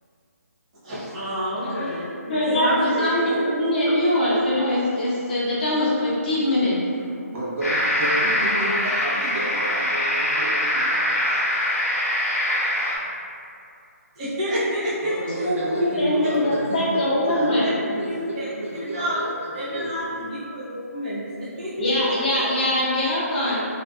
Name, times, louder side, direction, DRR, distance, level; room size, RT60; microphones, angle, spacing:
voice 1, 0.8-3.4 14.2-15.2 17.5-17.7 18.1-18.5 18.9-19.2 19.5-21.2 21.6-21.7, equal, 25° right, -11 dB, 0.7 m, -28 dB
voice 2, 1.6-1.9 2.3-6.7 15.4-17.7 21.8-23.6, left 1 dB, 30° left, -8 dB, 0.6 m, -22 dB
voice 3, 7.3-11.0 15.0-20.1, right 1 dB, 55° right, -8 dB, 0.9 m, -31 dB
sound 1, 7.6-13.0, equal, 70° left, 0.8 m, -23 dB
2.5 x 2.5 x 2.3 m, 2.5 s
hypercardioid pair, 170°, 9 cm